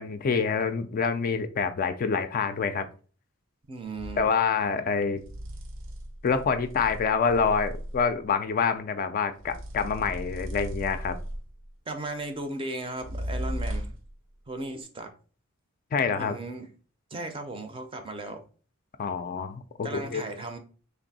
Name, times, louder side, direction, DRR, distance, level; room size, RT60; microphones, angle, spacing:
voice 1, 0.0-2.9 4.2-5.2 6.2-11.2 15.9-16.4 19.0-20.3, left 5 dB, 45° left, 0.3 m, -26 dB
voice 2, 3.7-4.3 11.9-13.9 14.5-15.1 16.1-16.7 17.1-18.4 19.8-20.6, right 2 dB, 25° right, 0.5 m, -36 dB
sound 1, 4.0-4.3 5.2-8.2 9.4-11.6 13.0-14.1, equal, 65° right, 0.7 m, -36 dB
3.4 x 2.6 x 3.9 m
head